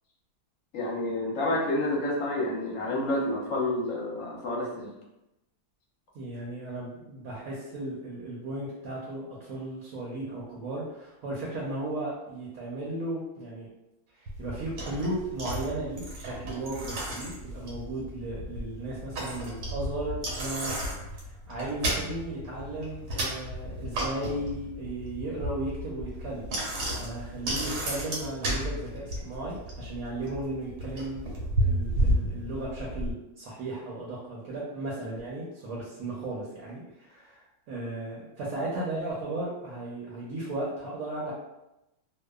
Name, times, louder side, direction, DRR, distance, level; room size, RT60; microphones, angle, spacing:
voice 1, 0.7-4.9, left 1 dB, 60° left, -3 dB, 0.9 m, -29 dB
voice 2, 6.1-13.7 14.1-26.4 27.0-31.3 31.6-41.3, right 2 dB, 70° right, -5 dB, 1.0 m, -35 dB
Bicycle, 14.3-33.1, right 1 dB, 85° right, 1.3 m, -33 dB
2.7 x 2.1 x 2.2 m, 0.92 s
omnidirectional pair, 1.7 m